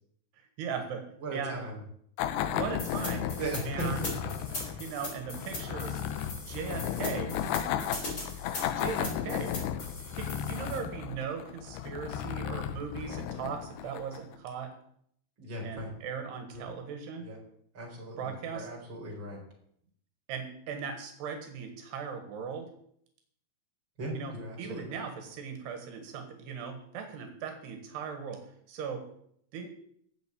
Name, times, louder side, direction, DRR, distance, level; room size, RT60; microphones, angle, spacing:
voice 1, 0.6-1.0 1.3-1.6 2.4-3.3 3.7-4.1 4.8-6.0 6.5-7.3 8.7-9.5 10.1-14.7 15.6-17.3 18.2-18.7 20.3-22.7 24.1-28.4 28.7-29.0 29.5-29.7, right 6 dB, 85° right, 6 dB, 3.8 m, -38 dB
voice 2, 1.2-1.8 3.4-4.8 15.4-15.9 16.5-16.7 17.2-17.4 17.7-19.4 24.0-25.0, right 1 dB, 30° right, -1 dB, 5.0 m, -38 dB
sound 1, 2.2-14.4, left 10 dB, 85° left, 2.9 m, -34 dB
sound 2, 2.8-10.8, left 2 dB, 30° left, 4.6 m, -40 dB
13.5 x 8.1 x 8.6 m, 0.68 s
omnidirectional pair, 4.6 m